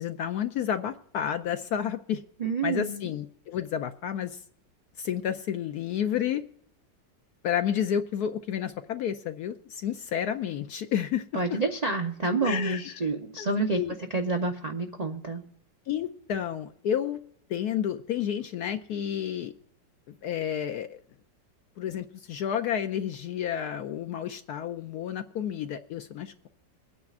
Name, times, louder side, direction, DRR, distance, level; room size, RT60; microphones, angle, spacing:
voice 1, 0.0-2.2 2.6-4.4 5.0-6.4 7.4-11.6 12.4-12.9 13.4-13.5 13.7-13.9 15.9-17.2 17.5-19.5 20.1-21.0 21.8-26.5, left 9 dB, 70° left, 8 dB, 1.0 m, -30 dB
voice 2, 2.4-3.1 11.3-15.4, right 3 dB, 55° right, 3 dB, 0.4 m, -29 dB
24.0 x 9.5 x 2.4 m, 0.68 s
omnidirectional pair, 1.9 m